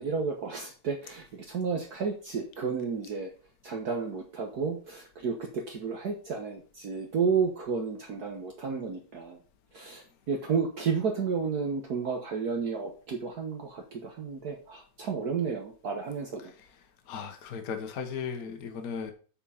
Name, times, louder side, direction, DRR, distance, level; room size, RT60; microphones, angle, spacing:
voice 1, 0.0-3.3 3.6-9.4 9.7-16.5, right 5 dB, 55° right, 1 dB, 1.5 m, -32 dB
voice 2, 17.1-19.1, left 6 dB, 55° left, 6 dB, 1.5 m, -36 dB
8.6 x 4.5 x 5.6 m, 0.40 s
omnidirectional pair, 2.1 m